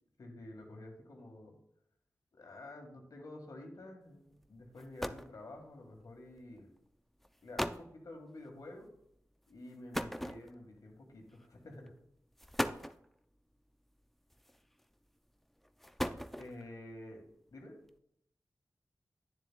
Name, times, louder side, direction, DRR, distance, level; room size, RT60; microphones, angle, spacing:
voice 1, 0.2-1.5 2.3-6.7 7.4-8.9 9.5-11.9 12.8-12.9 16.4-17.2 17.5-17.7, left 1 dB, 75° left, 2 dB, 1.6 m, -50 dB
sound 1, 4.4-4.5 4.8-5.4 6.4-6.6 7.2-7.3 7.6-7.9 9.9-10.8 11.7-11.9 12.4-13.1 14.3-14.8 15.6-16.7, equal, 5° left, 0.4 m, -37 dB
9.7 x 7.1 x 2.2 m, 0.75 s
cardioid pair, 50°, 6 cm